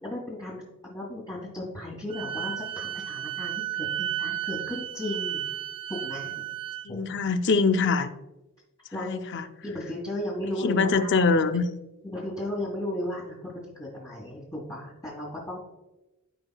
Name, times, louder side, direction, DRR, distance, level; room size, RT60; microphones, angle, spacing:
voice 1, 0.0-5.4 5.9-6.4 6.9-7.2 8.9-9.2 9.6-11.1 12.0-15.6, left 1 dB, 15° left, -5 dB, 1.6 m, -35 dB
Wind instrument woodwind instrument, 2.1-6.9, right 11 dB, 20° right, 0.4 m, -33 dB
voice 2, 6.8-8.1 8.9-9.4 10.6-11.6, left 4 dB, 55° left, 10 dB, 0.5 m, -23 dB
14.0 x 4.9 x 2.3 m, 0.99 s
head